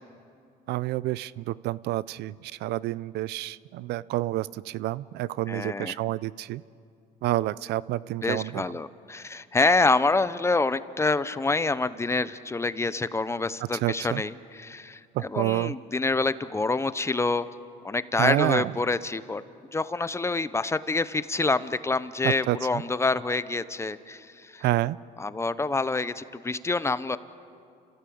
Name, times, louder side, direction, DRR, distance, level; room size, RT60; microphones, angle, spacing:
voice 1, 0.7-6.6 7.2-8.6 13.7-14.2 15.1-15.7 18.1-18.7 22.2-22.8 24.6-25.0, right 16 dB, 80° right, 20 dB, 0.5 m, -28 dB
voice 2, 5.5-6.0 8.2-17.5 17.8-19.4 19.7-24.6 25.2-27.2, left 3 dB, 15° left, 15 dB, 0.7 m, -27 dB
29.0 x 15.0 x 8.6 m, 2.4 s
cardioid pair, 110°, 17 cm